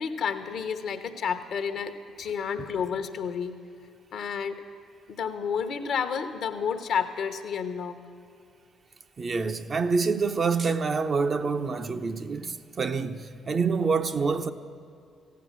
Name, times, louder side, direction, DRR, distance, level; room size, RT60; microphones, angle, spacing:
voice 1, 0.0-3.5 4.1-4.6 5.1-8.0, left 6 dB, 60° left, 0.9 m, -30 dB
voice 2, 9.2-14.5, right 4 dB, 45° right, 0.7 m, -27 dB
14.5 x 9.4 x 7.4 m
hypercardioid pair, 50°, 0 cm